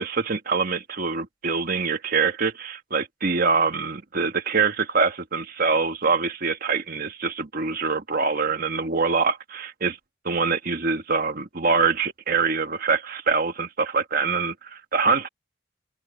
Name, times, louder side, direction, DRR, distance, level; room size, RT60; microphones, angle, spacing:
voice 1, 0.0-10.0 10.2-15.3, right 4 dB, 55° right, 1.6 m, -24 dB
open air
head